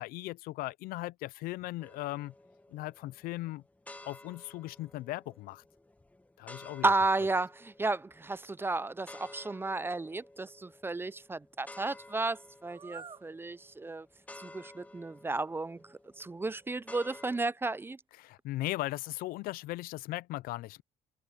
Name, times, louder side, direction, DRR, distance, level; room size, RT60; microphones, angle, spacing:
voice 1, 0.0-2.3 2.7-3.6 4.0-5.6 6.4-6.9 18.2-20.8, left 17 dB, 80° left, 0.6 m, -38 dB
sound 1, 1.8-17.4, left 2 dB, 10° left, 1.1 m, -54 dB
voice 2, 6.8-14.1 14.4-15.8 16.2-18.0, right 3 dB, 15° right, 0.5 m, -33 dB
sound 2, 8.6-8.9 12.6-13.3 14.6-14.7 15.8-16.7 17.2-18.0, right 5 dB, 35° right, 1.6 m, -52 dB
cardioid pair, 95°, 15 cm